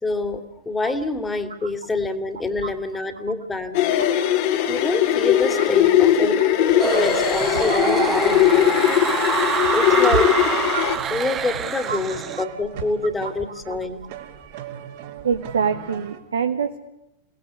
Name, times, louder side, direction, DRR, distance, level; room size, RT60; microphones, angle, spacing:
voice 1, 0.0-3.8 4.7-6.4 6.8-8.7 9.7-10.3 11.1-14.0, left 3 dB, 10° left, 8 dB, 2.6 m, -26 dB
sound 1, 3.7-11.0, left 11 dB, 50° left, 2.7 m, -19 dB
sound 2, 6.8-12.4, right 8 dB, 25° right, 1.5 m, -26 dB
sound 3, 6.9-16.2, right 10 dB, 50° right, 3.0 m, -39 dB
voice 2, 7.7-8.1 8.8-8.9 9.2-9.3 10.7-11.2 11.9-12.0 15.2-16.8, right 6 dB, 70° right, 6 dB, 1.4 m, -26 dB
29.5 x 19.0 x 8.4 m, 0.89 s
figure-of-eight pair, 90°, 0 cm